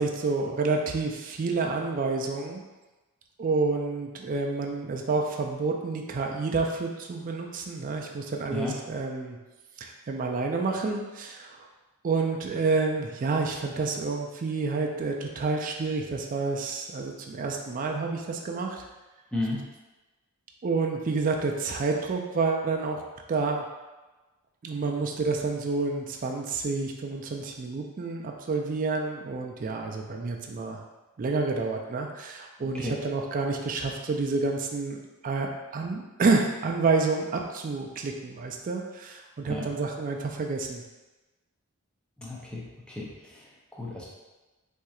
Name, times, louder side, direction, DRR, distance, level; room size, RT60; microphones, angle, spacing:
voice 1, 0.0-2.6 3.4-9.4 9.8-11.6 12.0-18.9 20.6-23.0 23.3-23.6 24.6-30.8 31.2-40.8, right 3 dB, 40° right, 1 dB, 0.3 m, -29 dB
voice 2, 42.2-42.6 42.9-44.0, left 2 dB, 5° left, -6 dB, 0.6 m, -33 dB
4.4 x 2.7 x 2.3 m, 1.1 s
head